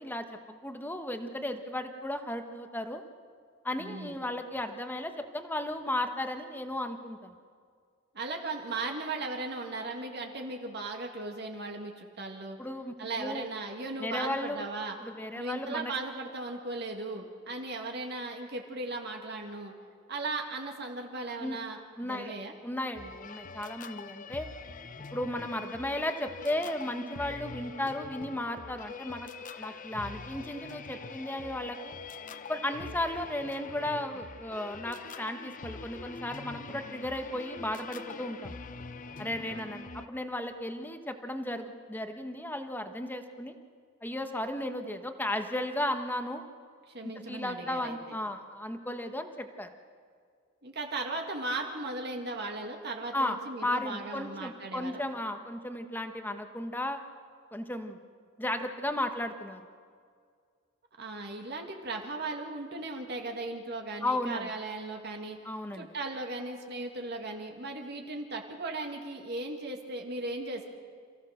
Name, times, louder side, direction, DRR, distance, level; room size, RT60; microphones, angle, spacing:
voice 1, 0.0-3.0 3.6-7.3 12.6-13.5 14.0-14.6 15.0-15.9 21.4-21.6 22.0-22.3 22.6-24.5 25.1-29.3 29.6-32.0 32.5-38.6 39.2-43.5 44.0-46.5 47.3-49.7 53.1-57.0 57.5-58.0 58.4-59.6 64.0-64.5 65.4-65.9, left 1 dB, 10° left, 7 dB, 1.2 m, -35 dB
voice 2, 3.8-4.2 8.1-12.6 13.0-15.0 15.4-19.7 20.1-22.5 39.3-39.7 46.9-48.2 50.6-55.0 61.0-65.4 65.7-70.6, right 2 dB, 55° right, 2 dB, 2.0 m, -37 dB
sound 1, 23.0-40.1, left 4 dB, 40° left, 0.7 m, -44 dB
27.5 x 15.5 x 6.5 m, 2.1 s
head